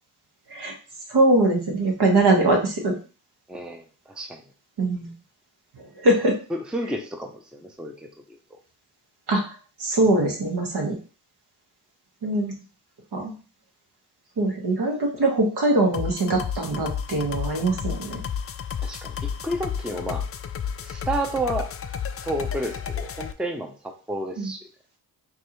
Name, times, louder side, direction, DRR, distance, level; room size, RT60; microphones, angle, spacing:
voice 1, 1.1-2.9 4.8-5.1 6.0-6.3 9.3-9.4 9.8-11.0 12.2-12.5 13.1-13.3 14.4-18.2 24.4-24.5, right 2 dB, 60° right, 0 dB, 1.5 m, -22 dB
voice 2, 3.5-4.4 6.5-8.4 18.8-20.2 20.8-21.7 22.2-24.6, right 1 dB, ahead, 3 dB, 0.7 m, -31 dB
sound 1, 15.9-23.3, left 7 dB, 35° left, 0.4 m, -32 dB
4.5 x 2.6 x 3.0 m, 0.36 s
supercardioid pair, 45°, 43 cm